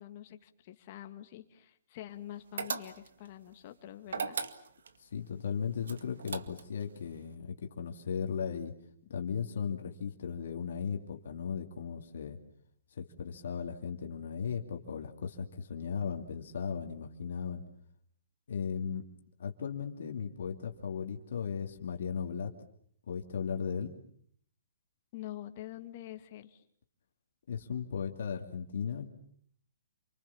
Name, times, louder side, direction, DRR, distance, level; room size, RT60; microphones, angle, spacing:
voice 1, 0.0-4.4 9.0-9.1 25.1-26.6, left 13 dB, 30° left, 7 dB, 2.0 m, -46 dB
sound 1, 2.6-3.3 4.1-5.0 5.8-6.8, right 5 dB, 75° right, 2.1 m, -37 dB
voice 2, 5.0-8.7 9.1-12.4 13.0-17.6 18.5-19.0 19.4-22.5 23.1-23.9 27.5-29.1, left 6 dB, 55° left, 3 dB, 2.7 m, -36 dB
28.5 x 25.0 x 7.2 m, 0.63 s
hypercardioid pair, 175°, 0 cm